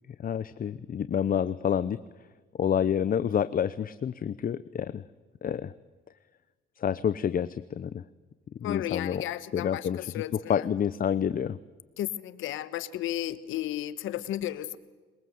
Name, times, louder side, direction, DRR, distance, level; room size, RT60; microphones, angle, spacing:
voice 1, 0.2-2.0 2.6-5.0 5.4-5.7 6.8-8.0 8.6-9.2 9.5-10.0 10.5-11.6, left 8 dB, 45° left, 14 dB, 0.7 m, -28 dB
voice 2, 8.6-10.7 12.0-14.8, left 13 dB, 85° left, 14 dB, 1.2 m, -33 dB
22.5 x 21.5 x 7.9 m, 1.4 s
cardioid pair, 90°, 20 cm